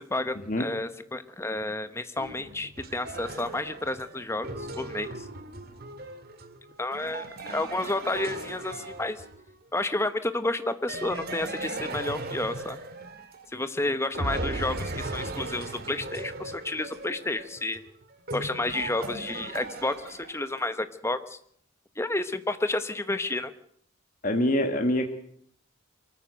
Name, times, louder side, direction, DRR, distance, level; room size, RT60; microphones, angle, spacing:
voice 1, 0.0-5.3 6.8-9.2 9.7-12.8 13.5-17.8 18.3-21.4 22.0-23.5, left 2 dB, 15° left, 11 dB, 1.0 m, -31 dB
sound 1, 2.2-9.6 10.9-13.7 14.1-20.6, right 2 dB, 50° right, 1.9 m, -38 dB
voice 2, 24.2-25.1, left 1 dB, 40° left, 5 dB, 1.6 m, -25 dB
23.0 x 14.5 x 7.8 m, 0.65 s
head